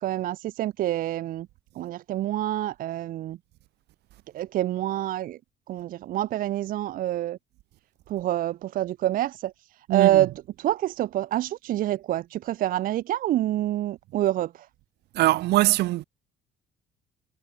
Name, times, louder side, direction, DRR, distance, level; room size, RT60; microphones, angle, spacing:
voice 1, 0.0-1.5 1.8-3.4 4.3-5.4 5.7-7.4 8.1-9.5 9.9-10.3 10.6-14.7, right 13 dB, 55° right, 0.5 m, -27 dB
voice 2, 9.9-10.3 15.1-16.0, right 17 dB, 80° right, 1.9 m, -22 dB
cardioid pair, 110°, 17 cm